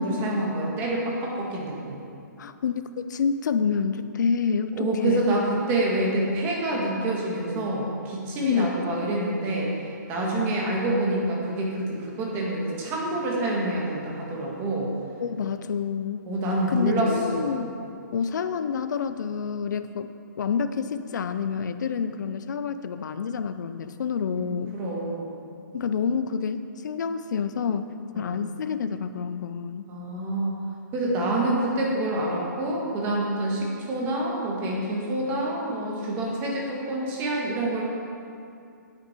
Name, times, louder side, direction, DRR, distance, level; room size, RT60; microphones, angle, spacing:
voice 1, 0.0-2.1 4.7-9.8 10.1-14.9 16.3-17.5 24.7-25.3 28.1-28.4 29.9-30.5 30.9-37.8, right 1 dB, 20° right, -3 dB, 1.7 m, -27 dB
voice 2, 2.4-2.7 3.1-5.3 8.4-8.8 15.2-16.3 16.7-17.7 18.1-20.1 20.4-24.8 25.7-29.8, left 6 dB, 65° left, 10 dB, 0.5 m, -28 dB
9.5 x 9.0 x 4.5 m, 2.5 s
hypercardioid pair, 160°, 11 cm